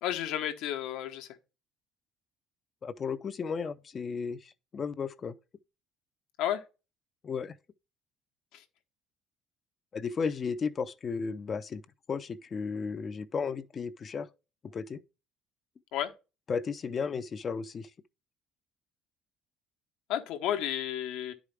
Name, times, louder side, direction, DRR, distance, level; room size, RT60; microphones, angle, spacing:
voice 1, 0.0-1.3 6.4-6.6 8.5-8.6 15.9-16.1 20.1-21.3, left 11 dB, 75° left, 1.1 m, -32 dB
voice 2, 2.8-5.4 7.2-7.5 9.9-11.8 12.1-14.3 14.7-15.0 16.5-17.9, left 5 dB, 25° left, 0.4 m, -34 dB
11.0 x 4.8 x 3.4 m
cardioid pair, 175°, 0 cm